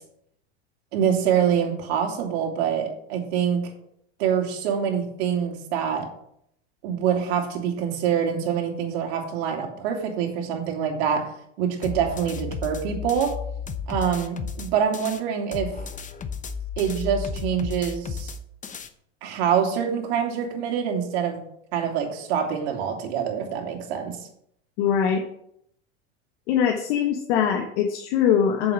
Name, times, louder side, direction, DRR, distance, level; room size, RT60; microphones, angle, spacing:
voice 1, 0.9-3.7 4.2-6.1 6.8-11.3 11.6-13.3 13.9-15.7 16.8-18.3 19.2-21.4 21.7-24.2, right 8 dB, 65° right, 2 dB, 2.7 m, -25 dB
sound 1, 11.8-15.2 15.5-18.9, left 5 dB, 20° left, 0.9 m, -33 dB
voice 2, 24.8-25.2 26.5-28.7, left 8 dB, 65° left, 3 dB, 1.4 m, -22 dB
8.0 x 7.1 x 6.3 m, 0.72 s
hypercardioid pair, 105°, 34 cm